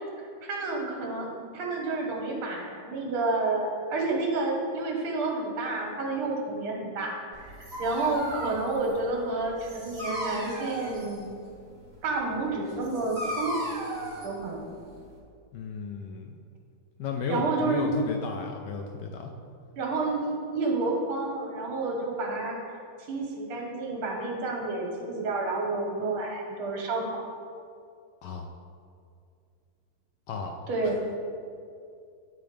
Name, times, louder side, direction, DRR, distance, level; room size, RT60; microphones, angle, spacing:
voice 1, 0.2-11.5 12.0-13.6 14.2-14.7 17.3-18.0 19.8-22.8 23.1-27.2 30.7-31.0, right 3 dB, 75° right, 0 dB, 2.0 m, -30 dB
Dog, 7.3-15.2, right 1 dB, 25° right, 1.5 m, -37 dB
voice 2, 15.5-16.3 17.0-19.3 28.2-28.5 30.3-30.5 30.8-30.9, left 4 dB, 80° left, 2 dB, 1.0 m, -34 dB
9.6 x 3.9 x 5.1 m, 2.4 s
omnidirectional pair, 2.4 m